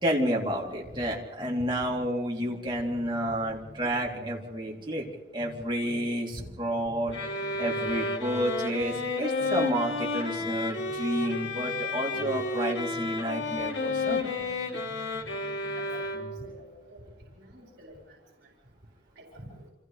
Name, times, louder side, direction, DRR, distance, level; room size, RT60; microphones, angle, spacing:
voice 1, 0.0-5.1 5.3-7.2 7.6-14.3, equal, 25° right, -3 dB, 3.0 m, -30 dB
sound 1, 0.7-2.1 2.4-6.1 6.4-10.1 10.4-14.1 14.4-16.5, equal, 10° right, 2.5 m, -49 dB
sound 2, 7.1-16.6, left 3 dB, 75° left, 2.2 m, -31 dB
voice 2, 15.7-16.1 16.4-17.0 17.4-18.2 19.2-19.6, right 1 dB, 65° right, -3 dB, 4.6 m, -48 dB
29.5 x 27.0 x 3.3 m, 1.1 s
head